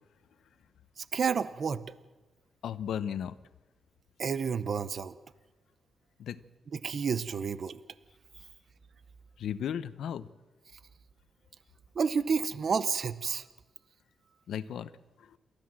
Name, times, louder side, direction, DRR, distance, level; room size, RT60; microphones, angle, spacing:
voice 1, 1.0-1.8 4.2-5.1 6.7-7.8 11.9-13.4, right 6 dB, 45° right, 14 dB, 0.7 m, -30 dB
voice 2, 2.6-3.3 6.2-6.4 9.4-10.3 14.5-14.9 15.2-15.3, left 9 dB, 75° left, 14 dB, 0.8 m, -35 dB
28.0 x 13.5 x 7.5 m, 1.2 s
wide cardioid pair, 150°, 0 cm